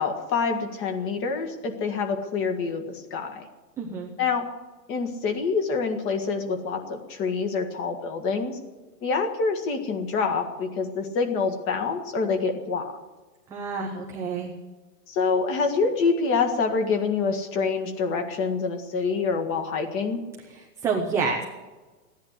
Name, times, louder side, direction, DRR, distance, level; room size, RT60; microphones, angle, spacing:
voice 1, 0.0-3.5 4.2-4.5 4.9-8.6 9.0-12.9 15.1-20.2, left 4 dB, 25° left, 4 dB, 1.8 m, -26 dB
voice 2, 3.8-4.1 13.5-14.5 20.5-21.4, right 5 dB, 5° right, -1 dB, 0.5 m, -28 dB
15.5 x 10.5 x 8.2 m, 1.2 s
hypercardioid pair, 145°, 49 cm